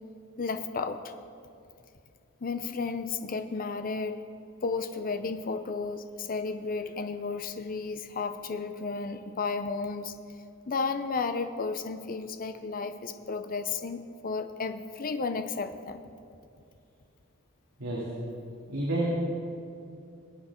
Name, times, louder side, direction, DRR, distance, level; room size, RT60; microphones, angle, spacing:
voice 1, 0.4-1.1 2.4-4.2 4.6-10.1 10.7-16.0, left 4 dB, 40° left, 8 dB, 0.6 m, -33 dB
voice 2, 17.8-18.1 18.7-19.1, right 2 dB, 70° right, -7 dB, 3.0 m, -29 dB
24.0 x 8.5 x 3.7 m, 2.5 s
head